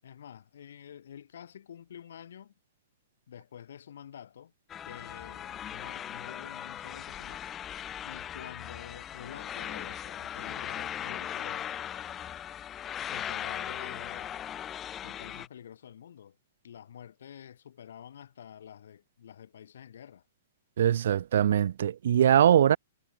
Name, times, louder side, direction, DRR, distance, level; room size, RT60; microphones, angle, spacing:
voice 1, 0.0-2.5 3.3-4.5 4.8-7.5 8.0-11.7 13.1-14.5 15.0-16.4 16.6-20.2, left 9 dB, 65° left, 6.8 m, -48 dB
sound 1, 4.7-15.5, left 10 dB, 15° left, 1.4 m, -38 dB
voice 2, 20.8-22.8, right 10 dB, 55° right, 0.7 m, -22 dB
hypercardioid pair, 180°, 0 cm